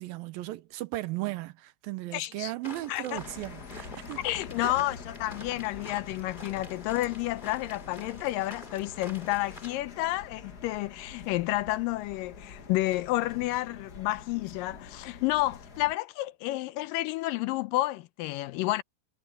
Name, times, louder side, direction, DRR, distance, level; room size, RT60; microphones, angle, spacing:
voice 1, 0.0-4.2 4.6-4.8, right 17 dB, 90° right, 2.7 m, -36 dB
voice 2, 2.1-2.5 2.9-3.2 4.2-18.8, left 17 dB, 85° left, 2.3 m, -30 dB
sound 1, 2.6-9.8, left 2 dB, 15° left, 2.5 m, -47 dB
sound 2, 3.1-15.9, left 5 dB, 45° left, 1.4 m, -46 dB
omnidirectional pair, 4.0 m